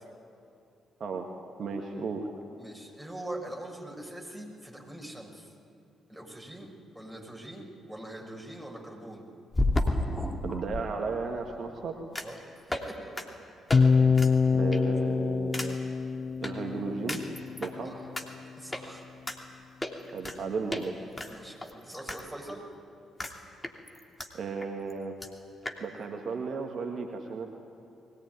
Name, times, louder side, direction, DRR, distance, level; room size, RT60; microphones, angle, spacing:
voice 1, 1.6-2.3 10.4-12.0 14.5-15.8 16.4-17.2 17.6-18.0 20.1-20.9 24.3-25.2 25.8-27.5, right 4 dB, 55° right, 2 dB, 2.0 m, -34 dB
voice 2, 2.6-5.5 6.1-6.7 6.9-9.3 12.2-13.2 17.8-18.1 18.6-19.1 21.3-22.6, right 1 dB, 5° right, -1 dB, 6.9 m, -43 dB
sound 1, 9.5-10.8 12.2-12.4 12.7-12.9 13.2-13.3 13.7-13.8 14.1-14.3 14.7-15.0 15.5-15.7 16.4-16.5 17.1-17.7 18.2-18.3 18.7-18.8 19.3-19.4 19.8-20.4 20.7-20.8 21.2-22.2 22.5-22.6 23.2-23.3 23.6-24.3 24.6-24.7 24.9-25.0 25.2-25.3 25.7-25.8, left 2 dB, 20° left, 2.9 m, -31 dB
sound 2, 13.7-17.8, left 5 dB, 35° left, 0.7 m, -25 dB
22.0 x 19.0 x 9.6 m, 2.5 s
figure-of-eight pair, 40°, 0 cm